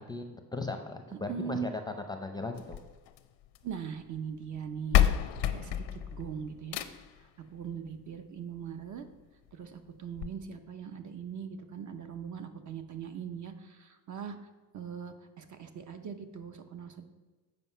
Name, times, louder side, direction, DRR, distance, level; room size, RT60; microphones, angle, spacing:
voice 1, 0.0-2.8, left 3 dB, 10° left, 5 dB, 0.6 m, -37 dB
voice 2, 1.3-1.7 3.6-6.8 7.2-9.1 9.5-14.5 14.7-17.0, right 7 dB, 45° right, 8 dB, 0.8 m, -40 dB
sound 1, 2.5-3.8 4.6-4.7 4.9-7.2 8.5-8.6 9.1-9.2 9.5-9.6 10.2-10.3, left 11 dB, 90° left, 0.7 m, -29 dB
7.8 x 5.3 x 5.6 m, 1.3 s
cardioid pair, 120°, 41 cm